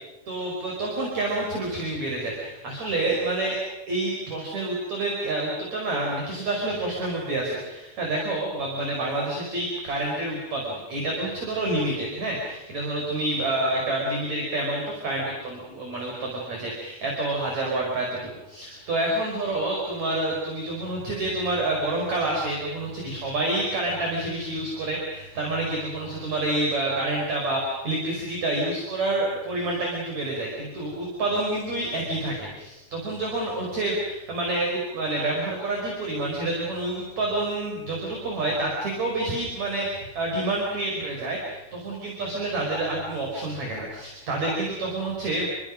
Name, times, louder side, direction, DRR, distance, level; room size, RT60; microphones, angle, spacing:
voice 1, 0.3-3.6 3.9-45.5, right 2 dB, 40° right, -1 dB, 6.0 m, -28 dB
30.0 x 23.0 x 6.4 m, 1.0 s
omnidirectional pair, 4.9 m